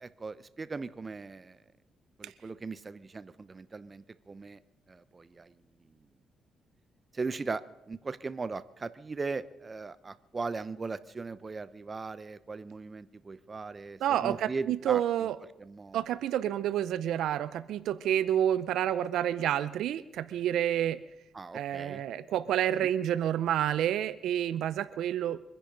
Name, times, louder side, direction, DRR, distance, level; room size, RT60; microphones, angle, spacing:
voice 1, 0.0-1.6 2.2-4.6 4.9-5.5 7.1-15.3 15.6-16.0 21.3-22.0 22.8-22.9, right 4 dB, 30° right, 15 dB, 0.8 m, -38 dB
voice 2, 14.0-15.4 15.9-21.0 21.5-25.4, right 11 dB, 80° right, 15 dB, 0.6 m, -29 dB
24.0 x 10.5 x 5.2 m, 0.95 s
cardioid pair, 90°, 0 cm